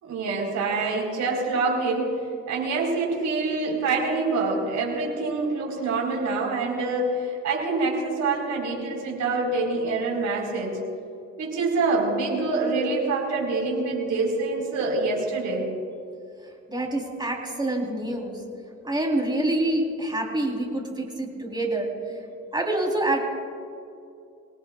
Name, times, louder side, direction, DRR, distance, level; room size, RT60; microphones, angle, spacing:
voice 1, 0.0-2.2 2.5-10.8 11.4-15.7, right 3 dB, 70° right, -2 dB, 4.3 m, -26 dB
voice 2, 16.7-18.4 18.8-22.1 22.5-23.2, right 1 dB, 15° right, 0 dB, 3.7 m, -26 dB
26.0 x 18.5 x 2.4 m, 2.5 s
cardioid pair, 90°, 30 cm